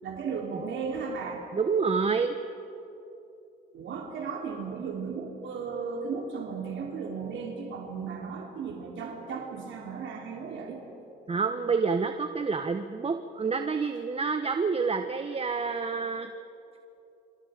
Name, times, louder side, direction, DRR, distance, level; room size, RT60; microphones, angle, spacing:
voice 1, 0.0-1.4 3.7-10.8, right 5 dB, 70° right, 0 dB, 3.2 m, -35 dB
voice 2, 1.5-2.3 11.3-16.3, right 5 dB, 30° right, 7 dB, 1.0 m, -28 dB
29.0 x 26.0 x 5.1 m, 2.9 s
cardioid pair, 90°, 20 cm